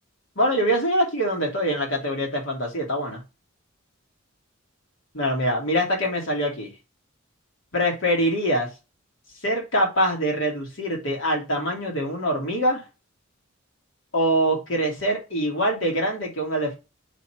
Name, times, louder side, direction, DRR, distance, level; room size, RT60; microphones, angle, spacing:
voice 1, 0.4-3.2 5.1-6.7 7.7-8.7 9.4-12.8 14.1-16.7, equal, 65° left, 2.6 m, -24 dB
5.5 x 4.1 x 4.6 m
head